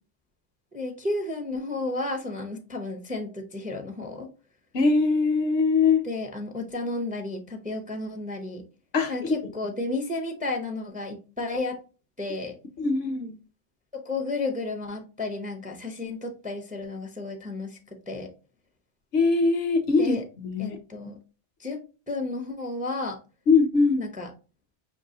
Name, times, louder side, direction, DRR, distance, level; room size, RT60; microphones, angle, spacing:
voice 1, 0.7-4.3 6.0-8.6 9.1-11.8 12.2-12.6 13.9-17.8 18.1-18.3 20.0-20.2 20.6-21.2 21.6-21.8 22.1-23.2 24.0-24.3, left 2 dB, 10° right, 0.5 m, -32 dB
voice 2, 4.7-6.0 8.9-9.4 12.8-13.4 19.1-20.8 23.5-24.1, left 4 dB, 65° left, 0.9 m, -22 dB
5.3 x 2.9 x 2.7 m
omnidirectional pair, 1.2 m